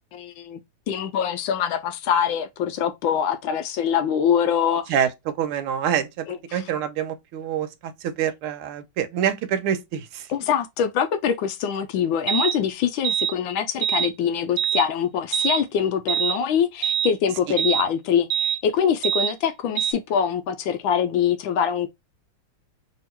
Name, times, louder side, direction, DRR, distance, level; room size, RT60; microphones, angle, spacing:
voice 1, 0.1-0.6 0.9-4.8 6.3-6.6 10.3-21.9, left 8 dB, 75° left, 1.2 m, -24 dB
voice 2, 4.9-10.3 17.5-17.6, right 9 dB, 90° right, 1.6 m, -26 dB
sound 1, 12.3-12.6 13.0-13.3 13.8-14.1 14.6-14.8 15.3-15.6 16.1-16.4 16.8-17.1 17.6-17.8 18.3-18.6 19.0-19.3 19.8-19.9, right 10 dB, 65° right, 0.9 m, -23 dB
3.5 x 2.8 x 4.4 m
omnidirectional pair, 2.4 m